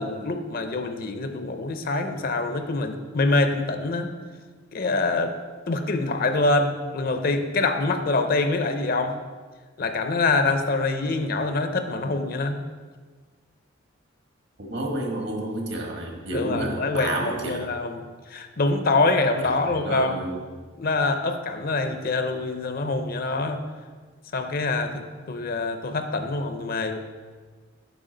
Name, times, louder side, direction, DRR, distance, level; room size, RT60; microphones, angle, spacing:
voice 1, 0.0-4.1 4.7-5.3 5.7-9.2 9.8-12.6 16.3-20.3 20.8-23.6 24.3-27.0, left 3 dB, 50° left, 7 dB, 0.6 m, -25 dB
voice 2, 14.6-17.6 19.7-20.4, right 1 dB, 60° right, 1 dB, 1.3 m, -30 dB
8.4 x 5.8 x 3.9 m, 1.5 s
head